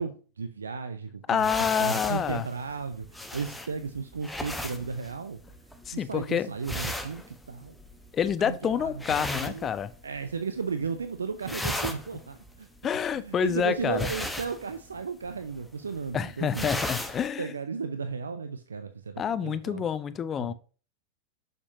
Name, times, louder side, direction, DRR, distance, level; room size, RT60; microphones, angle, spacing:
voice 1, 0.0-1.5 1.8-5.4 5.9-7.7 8.4-9.0 9.3-9.7 10.0-12.7 13.1-16.7 17.4-19.8 20.4-20.5, right 5 dB, 70° right, 0.5 m, -34 dB
voice 2, 1.3-2.5 5.9-6.5 8.1-9.9 12.8-14.1 16.1-17.5 19.2-20.5, left 8 dB, 25° left, 0.5 m, -28 dB
sound 1, 1.4-10.3 10.6-11.0 11.3-17.3, left 1 dB, 5° left, 0.9 m, -37 dB
7.0 x 6.6 x 2.7 m
figure-of-eight pair, 90°, 0 cm